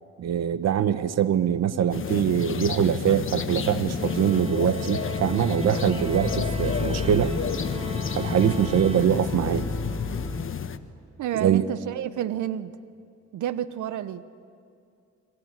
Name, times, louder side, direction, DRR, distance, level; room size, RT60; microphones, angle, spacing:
voice 1, 0.2-7.3 8.2-9.7 11.3-11.7, right 9 dB, 60° right, 13 dB, 1.1 m, -23 dB
sound 1, 1.9-10.8, left 6 dB, 45° left, 1.3 m, -31 dB
sound 2, 3.9-9.6, right 1 dB, 20° right, 1.6 m, -41 dB
sound 3, 5.0-10.4, left 3 dB, 5° left, 6.9 m, -33 dB
voice 2, 11.2-12.7 13.3-14.2, right 11 dB, 80° right, 13 dB, 1.1 m, -29 dB
26.5 x 23.5 x 9.0 m, 2.4 s
cardioid pair, 90°, 30 cm